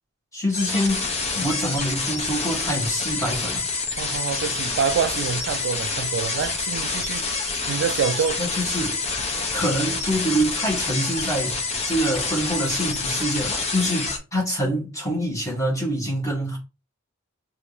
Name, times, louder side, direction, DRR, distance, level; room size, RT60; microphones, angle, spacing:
voice 1, 0.3-3.6 8.4-9.0 9.5-11.6 11.8-16.6, equal, 15° left, 1.6 m, -25 dB
sound 1, 0.5-14.2, left 4 dB, 30° left, 0.6 m, -27 dB
voice 2, 4.0-7.3 7.7-8.4, right 7 dB, 60° right, 0.3 m, -26 dB
3.4 x 2.6 x 3.2 m
head